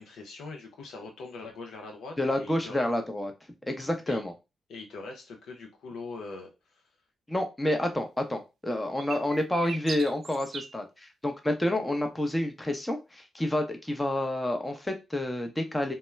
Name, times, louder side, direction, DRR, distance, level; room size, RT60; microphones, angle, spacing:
voice 1, 0.0-2.9 4.1-4.2 4.7-6.5 7.8-8.0, left 3 dB, 70° left, 2 dB, 0.5 m, -42 dB
voice 2, 2.2-3.3 3.7-4.3 7.3-15.9, left 1 dB, 15° left, 5 dB, 0.7 m, -29 dB
sound 1, 9.0-10.7, right 5 dB, 70° right, 0.4 m, -39 dB
2.2 x 2.1 x 3.1 m, 0.26 s
hypercardioid pair, 40°, 0 cm